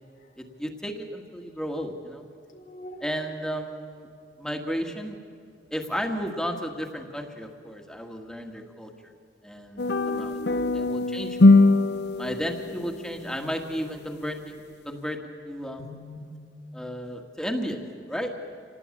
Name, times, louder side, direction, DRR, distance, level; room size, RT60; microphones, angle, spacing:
voice 1, 0.4-2.3 3.0-4.1 4.4-5.1 5.7-8.9 9.4-10.4 10.7-11.5 12.2-15.8 16.7-17.8 18.1-18.3, equal, 5° left, 3 dB, 1.7 m, -33 dB
voice 2, 2.5-3.1 9.9-11.0 15.8-16.2, left 1 dB, 50° left, 6 dB, 2.1 m, -41 dB
sound 1, 9.8-13.2, left 2 dB, 70° left, 0.7 m, -21 dB
26.5 x 19.5 x 8.5 m, 2.3 s
head